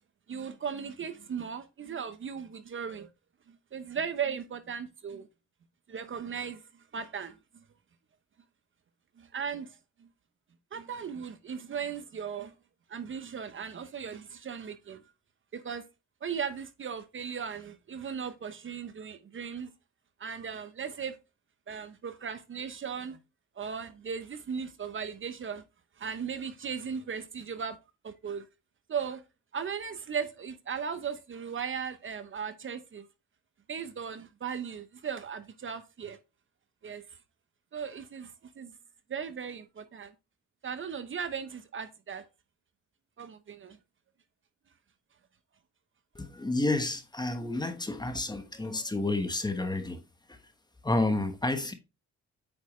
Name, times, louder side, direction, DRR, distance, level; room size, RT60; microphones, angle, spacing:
voice 1, 0.3-3.1 3.5-5.3 5.9-7.6 9.2-10.1 10.7-12.5 12.9-15.0 15.5-15.8 16.2-19.7 20.2-21.2 21.7-23.2 23.6-25.6 26.0-27.8 28.0-28.5 28.9-29.2 29.5-33.1 33.7-36.2 36.8-37.0 37.7-38.7 39.1-40.1 40.6-42.2 43.2-43.8, right 7 dB, 40° right, 0.9 m, -37 dB
voice 2, 46.1-50.0 50.3-50.4 50.8-51.7, left 2 dB, 15° left, 1.2 m, -30 dB
8.9 x 4.7 x 3.1 m
cardioid pair, 90°, 30 cm